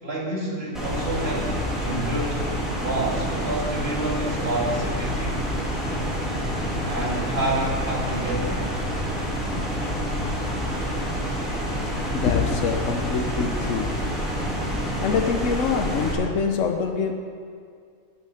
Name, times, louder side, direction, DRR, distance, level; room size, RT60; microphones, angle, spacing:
voice 1, 0.0-2.4 2.8-5.4 6.8-8.7, right 1 dB, 50° right, -3 dB, 2.5 m, -28 dB
sound 1, 0.7-16.1, equal, ahead, 2.7 m, -28 dB
voice 2, 12.1-14.1 15.0-17.1, left 6 dB, 75° left, 4 dB, 1.2 m, -25 dB
10.5 x 8.5 x 7.8 m, 2.2 s
omnidirectional pair, 1.3 m